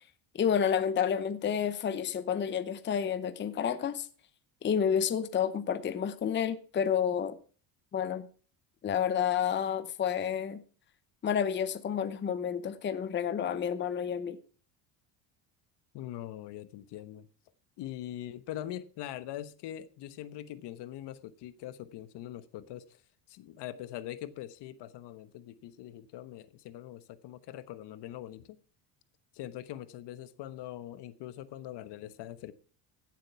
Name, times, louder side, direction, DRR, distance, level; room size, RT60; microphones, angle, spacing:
voice 1, 0.3-4.1 4.6-7.4 7.9-8.3 8.8-10.6 11.2-14.4, left 8 dB, 25° left, 0.8 m, -30 dB
voice 2, 15.9-17.3 17.8-23.0 23.3-28.6 29.3-32.5, left 12 dB, 60° left, 1.2 m, -42 dB
16.0 x 7.7 x 4.6 m
cardioid pair, 140°, 47 cm